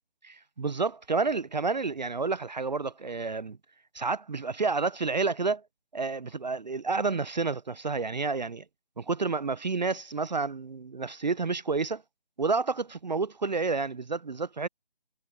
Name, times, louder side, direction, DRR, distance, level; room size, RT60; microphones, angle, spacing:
voice 1, 0.2-3.6 3.9-5.6 5.9-8.6 9.0-12.0 12.4-14.7, right 4 dB, 50° right, 0.5 m, -30 dB
figure-of-eight pair, 160°, 30 cm